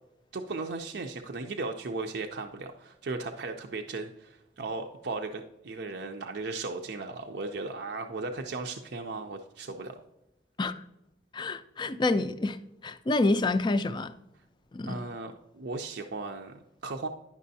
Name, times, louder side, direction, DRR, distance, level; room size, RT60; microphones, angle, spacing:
voice 1, 0.3-10.0 14.9-17.1, right 3 dB, 60° right, 0.5 m, -36 dB
voice 2, 11.3-12.6 12.8-14.1 14.7-15.0, left 2 dB, 25° left, 0.4 m, -27 dB
10.0 x 6.0 x 2.7 m
head